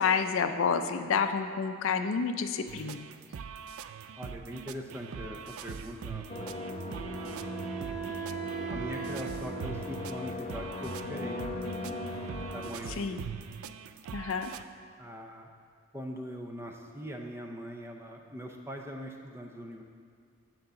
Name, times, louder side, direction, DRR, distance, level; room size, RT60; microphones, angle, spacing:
voice 1, 0.0-3.1 13.0-13.3 14.1-14.5, left 6 dB, 65° left, 8 dB, 0.4 m, -29 dB
sound 1, 2.7-14.6, right 7 dB, 80° right, 0.3 m, -43 dB
voice 2, 4.2-6.5 6.7-7.6 8.7-11.8 12.5-13.2 15.0-15.5 15.9-19.8, equal, 10° right, 2 dB, 0.5 m, -42 dB
sound 2, 6.3-12.7, left 2 dB, 30° left, 0.7 m, -39 dB
Wind instrument woodwind instrument, 6.6-10.2, right 6 dB, 40° right, 2.0 m, -40 dB
9.1 x 3.8 x 6.9 m, 2.2 s
head